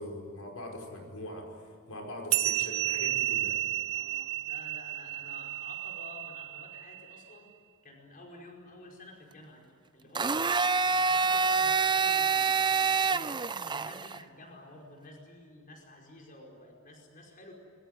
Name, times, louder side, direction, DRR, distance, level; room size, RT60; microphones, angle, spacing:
voice 1, 0.0-1.5 1.9-3.6, left 1 dB, 85° left, 1 dB, 5.3 m, -41 dB
sound 1, 2.3-7.2, right 14 dB, 65° right, 0.7 m, -32 dB
voice 2, 3.8-7.5 7.8-17.5, left 2 dB, 40° left, 0 dB, 5.1 m, -51 dB
Domestic sounds home sounds, 10.1-14.2, right 5 dB, 20° right, 0.6 m, -26 dB
26.0 x 22.0 x 9.3 m, 2.2 s
head